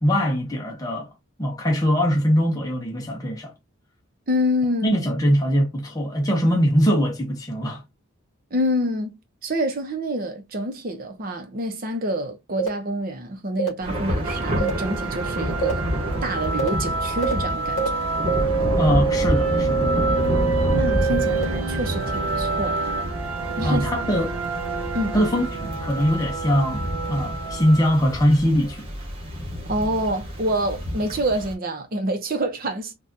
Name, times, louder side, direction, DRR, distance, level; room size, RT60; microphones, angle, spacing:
voice 1, 0.0-1.1 1.4-3.5 4.8-7.8 18.8-19.9 23.6-24.4 25.1-28.9, equal, 15° left, 0.7 m, -22 dB
voice 2, 4.3-5.0 8.5-15.9 16.2-17.9 20.7-23.0 23.6-23.9 24.9-25.2 29.7-32.9, equal, 45° right, 0.7 m, -27 dB
sound 1, 12.6-12.7 13.6-13.7 14.6-14.7 15.6-15.7 16.6-16.7 17.2-17.3 17.8-17.9 18.3-21.4, right 5 dB, 35° left, 1.6 m, -24 dB
Thunder / Rain, 13.8-31.5, equal, 30° right, 1.2 m, -29 dB
sound 2, 14.2-28.1, right 3 dB, 85° right, 0.7 m, -30 dB
3.9 x 2.3 x 2.6 m
head